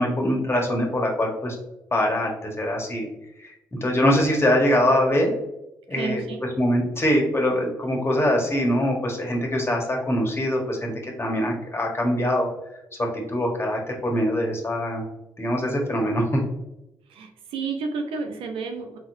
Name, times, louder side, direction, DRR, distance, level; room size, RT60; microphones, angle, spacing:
voice 1, 0.0-1.6 1.9-3.1 3.4-5.3 5.9-6.2 6.6-12.5 13.0-15.0 15.4-16.4, equal, 25° left, 0 dB, 1.5 m, -23 dB
voice 2, 5.9-6.4 17.1-19.0, right 4 dB, 70° right, 4 dB, 0.7 m, -31 dB
4.3 x 3.7 x 2.7 m, 0.91 s
hypercardioid pair, 45°, 10 cm